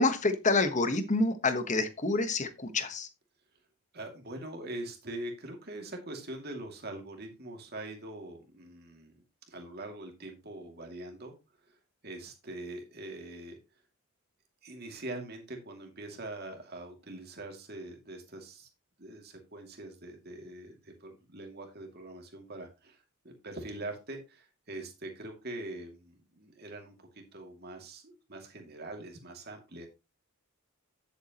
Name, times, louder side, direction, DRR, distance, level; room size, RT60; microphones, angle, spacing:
voice 1, 0.0-3.1, left 2 dB, 35° left, 10 dB, 1.2 m, -27 dB
voice 2, 3.9-9.1 9.5-11.3 11.6-11.7 12.0-13.6 14.6-18.7 19.0-23.0 23.2-29.9, right 2 dB, 45° right, 3 dB, 2.5 m, -43 dB
10.5 x 8.2 x 3.0 m, 0.27 s
head